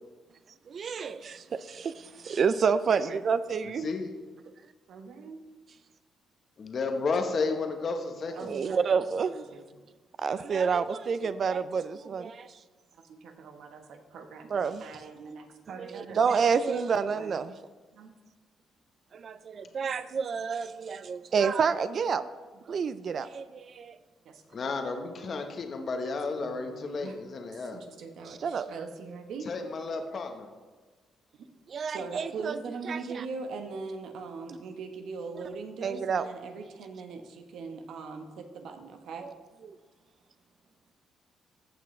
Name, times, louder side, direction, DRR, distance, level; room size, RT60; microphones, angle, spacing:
voice 1, 0.7-3.9 8.4-9.4 10.2-12.5 14.5-14.8 15.8-17.5 19.1-22.2 22.7-24.0 28.3-28.7 31.7-32.6 32.9-33.2 35.8-36.3 39.2-39.3 39.6-39.8, right 6 dB, 50° right, 14 dB, 0.4 m, -29 dB
voice 2, 3.8-4.1 6.6-8.6 24.5-27.8 29.4-30.5, left 4 dB, 50° left, 5 dB, 1.0 m, -32 dB
voice 3, 4.9-5.4 8.4-8.8 9.5-9.6 13.0-16.6 17.0-17.6 17.9-18.1 21.6-22.3 22.5-22.6 24.2-24.4 25.2-25.3 26.1-27.1 27.7-29.5 31.9-39.2, right 4 dB, 75° right, 5 dB, 1.1 m, -41 dB
14.5 x 6.0 x 3.2 m, 1.4 s
cardioid pair, 90°, 0 cm